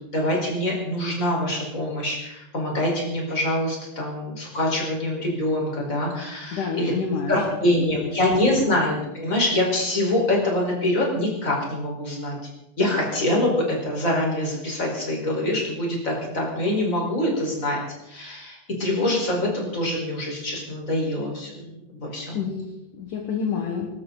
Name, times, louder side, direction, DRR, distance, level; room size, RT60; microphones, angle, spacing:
voice 1, 0.1-6.9 7.3-12.4 12.8-17.8 18.0-22.4, left 1 dB, 20° left, -1 dB, 4.8 m, -25 dB
voice 2, 6.5-7.3 7.8-8.2 8.6-8.7 22.3-23.9, left 6 dB, 55° left, 2 dB, 2.6 m, -29 dB
25.0 x 13.0 x 4.1 m, 0.91 s
omnidirectional pair, 5.1 m